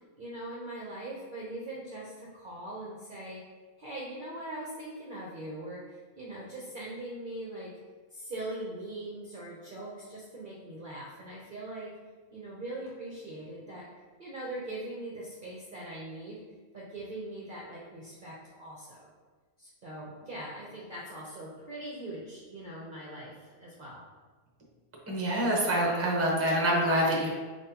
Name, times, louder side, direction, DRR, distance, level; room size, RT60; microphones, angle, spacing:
voice 1, 0.2-3.4 3.8-7.7 8.1-11.9 12.3-13.9 14.2-16.4 16.7-19.1 19.6-24.0, right 1 dB, 45° right, -5 dB, 0.7 m, -41 dB
voice 2, 25.1-27.3, right 1 dB, 15° right, -3 dB, 0.7 m, -26 dB
4.9 x 3.8 x 2.8 m, 1.4 s
omnidirectional pair, 1.5 m